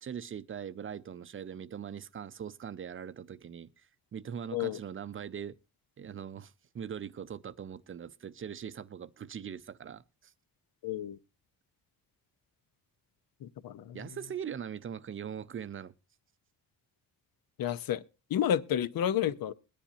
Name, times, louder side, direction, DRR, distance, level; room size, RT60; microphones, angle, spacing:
voice 1, 0.0-3.9 4.1-5.6 6.0-10.3 13.9-15.9, right 8 dB, 35° right, 0.5 m, -41 dB
voice 2, 10.8-11.2 13.4-14.0 17.6-18.0 18.3-19.5, left 10 dB, 85° left, 0.8 m, -30 dB
22.0 x 10.0 x 2.7 m
wide cardioid pair, 160°, 34 cm